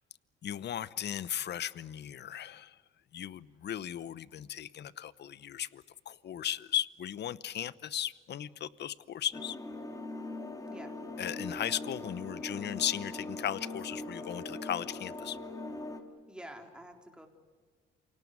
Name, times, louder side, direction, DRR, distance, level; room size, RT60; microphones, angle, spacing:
voice 1, 0.4-2.8 3.1-9.6 11.2-15.4, left 10 dB, 60° left, 18 dB, 0.9 m, -36 dB
sound 1, 9.3-16.0, left 2 dB, 15° left, 2.9 m, -41 dB
voice 2, 16.3-17.3, right 1 dB, 5° right, 3 dB, 4.0 m, -48 dB
28.0 x 18.5 x 9.5 m, 1.5 s
cardioid pair, 90°, 20 cm